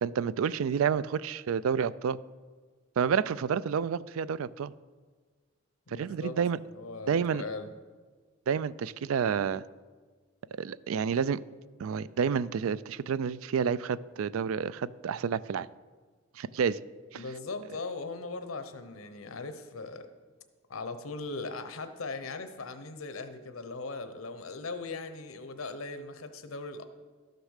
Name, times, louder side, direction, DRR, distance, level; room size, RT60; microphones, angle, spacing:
voice 1, 0.0-2.2 3.0-4.7 5.9-6.6 7.1-7.4 8.5-9.6 10.6-11.4 11.8-15.7 16.4-16.8 17.1-17.2, right 7 dB, 80° right, 19 dB, 0.4 m, -29 dB
voice 2, 5.9-7.7 17.1-20.1 20.7-26.8, left 3 dB, 85° left, 9 dB, 0.8 m, -39 dB
12.5 x 6.7 x 6.5 m, 1.4 s
head